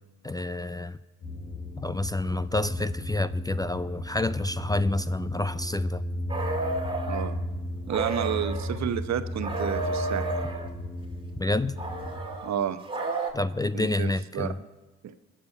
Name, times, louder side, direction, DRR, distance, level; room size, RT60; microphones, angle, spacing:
voice 1, 0.2-1.0 1.8-6.0 11.4-11.8 13.3-14.6, left 2 dB, 15° left, 15 dB, 0.4 m, -28 dB
sound 1, 1.2-12.2, left 1 dB, 90° left, 2.8 m, -34 dB
sound 2, 6.3-7.3 7.9-8.8 9.4-10.7 11.8-13.3, right 3 dB, 15° right, 2.3 m, -32 dB
voice 2, 7.9-10.4 12.4-12.8 13.7-14.5, right 9 dB, 65° right, 11 dB, 0.9 m, -30 dB
20.5 x 7.3 x 5.5 m, 1.2 s
supercardioid pair, 55°, 30 cm